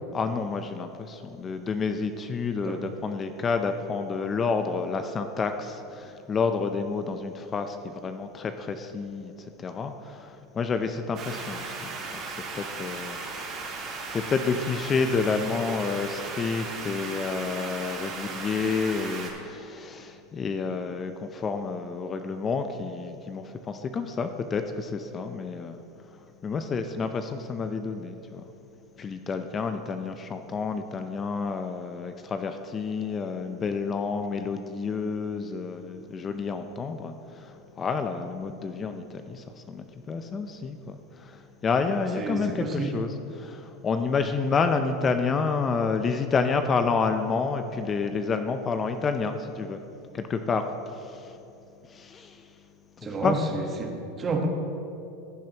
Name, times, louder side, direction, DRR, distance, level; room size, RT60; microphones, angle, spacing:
voice 1, 0.1-28.5 29.0-49.8 50.1-51.4 51.8-52.7 53.0-53.4, left 5 dB, 30° left, 8 dB, 0.5 m, -29 dB
sound 1, 11.1-19.3, right 4 dB, 45° right, 2.0 m, -36 dB
voice 2, 42.2-42.9 53.0-53.4 53.8-54.5, right 4 dB, 30° right, 3 dB, 1.2 m, -30 dB
15.0 x 7.4 x 2.9 m, 2.7 s
hypercardioid pair, 105°, 0 cm